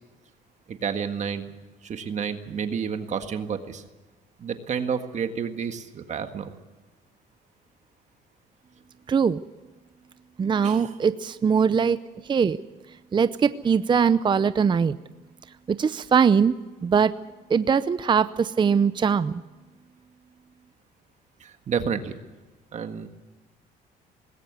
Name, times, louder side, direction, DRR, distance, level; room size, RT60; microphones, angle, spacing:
voice 1, 0.7-1.5 1.8-3.8 4.4-6.5 10.6-11.0 21.4-22.1 22.7-23.1, right 6 dB, 45° right, 7 dB, 1.7 m, -30 dB
voice 2, 9.1-9.4 10.4-12.0 12.3-12.6 13.1-15.0 15.7-16.6 16.8-17.1 17.5-19.3, right 6 dB, 30° right, 13 dB, 0.6 m, -21 dB
20.0 x 17.5 x 8.3 m, 1.2 s
cardioid pair, 110°, 17 cm